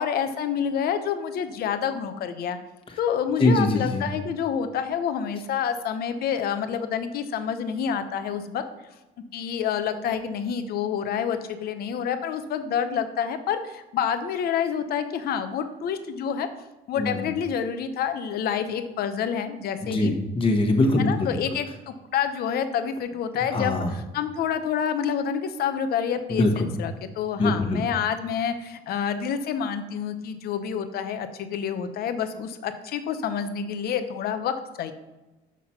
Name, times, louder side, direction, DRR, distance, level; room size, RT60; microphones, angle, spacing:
voice 1, 0.0-2.6 3.0-8.6 9.3-16.5 16.9-20.1 21.0-34.9, left 8 dB, 65° left, 9 dB, 0.8 m, -28 dB
voice 2, 3.4-4.1 17.0-17.3 19.8-21.3 23.5-24.0 26.3-26.7 27.4-27.8, left 2 dB, 30° left, 3 dB, 1.4 m, -23 dB
6.0 x 5.9 x 5.8 m, 1.1 s
cardioid pair, 110°, 17 cm